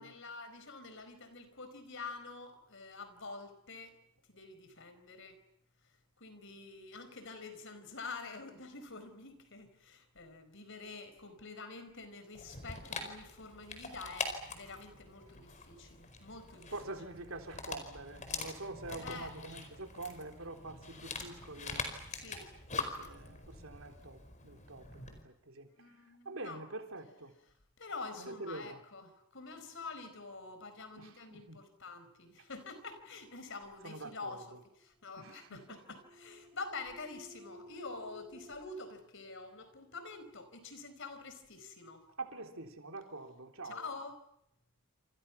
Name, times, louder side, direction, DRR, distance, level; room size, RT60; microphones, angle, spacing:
voice 1, 0.0-4.0 4.3-5.4 5.8-16.8 19.0-19.3 22.1-22.5 25.8-26.6 27.8-42.0 43.6-44.2, left 3 dB, 60° left, 10 dB, 4.6 m, -47 dB
Dog, 12.3-25.2, left 4 dB, 35° left, 4.7 m, -44 dB
voice 2, 16.5-21.9 22.7-25.7 26.3-27.3 28.2-28.8 31.0-31.6 33.8-34.4 35.2-35.8 42.2-43.8, right 2 dB, 70° right, 5 dB, 3.8 m, -46 dB
sound 1, 34.7-38.7, equal, 20° right, 2.5 m, -56 dB
28.5 x 28.0 x 6.0 m, 0.74 s
head